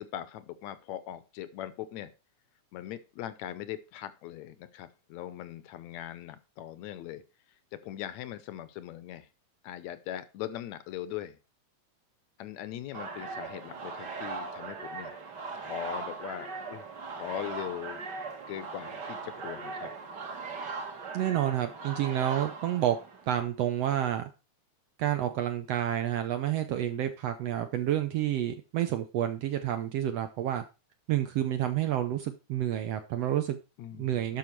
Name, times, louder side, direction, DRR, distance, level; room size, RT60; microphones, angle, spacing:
voice 1, 0.0-2.1 2.7-7.2 7.7-9.3 9.6-11.4 12.4-15.1 15.6-16.9 17.1-18.0 18.5-19.9 33.8-34.4, left 12 dB, 75° left, 14 dB, 2.0 m, -40 dB
sound 1, 12.9-23.4, right 4 dB, 40° right, 1.8 m, -39 dB
voice 2, 21.1-23.0 23.3-24.3 25.0-30.6 31.1-33.6 34.0-34.4, right 11 dB, 70° right, 8 dB, 1.6 m, -29 dB
11.5 x 5.6 x 4.6 m, 0.30 s
omnidirectional pair, 3.4 m